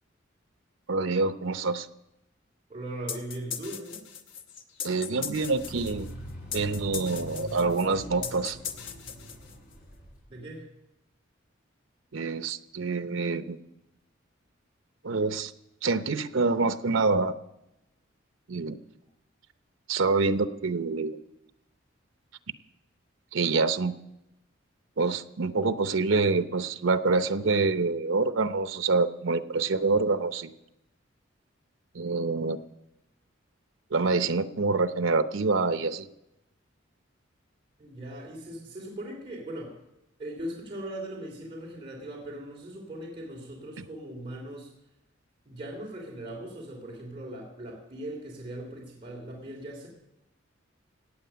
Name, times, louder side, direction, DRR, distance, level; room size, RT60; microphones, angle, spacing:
voice 1, 0.9-1.9 4.8-6.1 6.5-8.6 12.1-13.6 15.0-15.5 15.8-17.3 18.5-18.8 19.9-21.2 23.3-23.9 25.0-30.5 31.9-32.6 33.9-36.1, right 3 dB, 75° right, 11 dB, 0.7 m, -26 dB
voice 2, 2.7-4.0 10.3-10.7 37.8-39.7 40.2-44.7 45.4-49.9, right 1 dB, 30° right, -3 dB, 2.9 m, -39 dB
sound 1, 3.1-9.8, left 8 dB, 70° left, 1.1 m, -39 dB
sound 2, 5.2-10.2, right 1 dB, 50° left, 3.5 m, -42 dB
17.5 x 8.6 x 6.9 m, 0.90 s
head